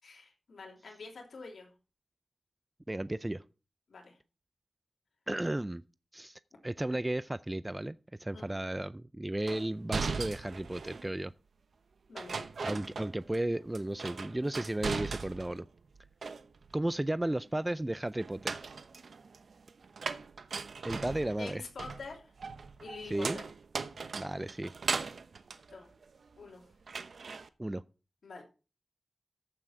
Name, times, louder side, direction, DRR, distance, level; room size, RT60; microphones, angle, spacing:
voice 1, 0.0-1.7 3.9-4.2 8.3-8.6 12.1-12.5 21.4-22.3 22.8-23.5 25.7-25.9 26.4-26.7 28.2-28.4, left 4 dB, 85° left, 3.2 m, -47 dB
voice 2, 2.9-3.4 5.3-5.8 6.1-11.3 12.6-15.6 16.7-18.6 20.8-21.6 23.1-23.4 24.1-24.7 27.6-27.8, right 1 dB, 20° right, 0.4 m, -34 dB
sound 1, 9.5-11.1 12.2-13.5 13.7-15.6 15.9-16.8 18.2-26.5 26.9-27.5, right 4 dB, 80° right, 0.8 m, -39 dB
14.0 x 6.2 x 4.5 m
wide cardioid pair, 65°, 0 cm